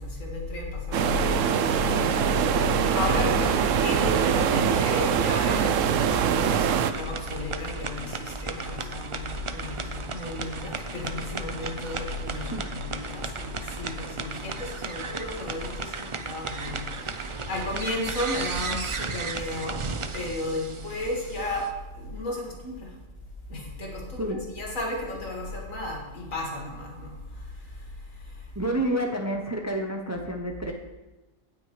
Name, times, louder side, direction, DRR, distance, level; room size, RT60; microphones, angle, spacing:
voice 1, 0.0-2.1 2.7-6.7 6.9-19.9 20.1-21.7 21.9-22.9 23.5-27.1, left 2 dB, 85° left, -1 dB, 2.4 m, -33 dB
sound 1, 0.9-6.9, right 8 dB, 75° right, 1.0 m, -23 dB
sound 2, 6.9-21.7, right 4 dB, 55° right, 0.3 m, -35 dB
voice 2, 28.5-30.7, right 1 dB, 15° right, 3 dB, 0.6 m, -29 dB
17.5 x 6.2 x 3.2 m, 1.1 s
omnidirectional pair, 1.4 m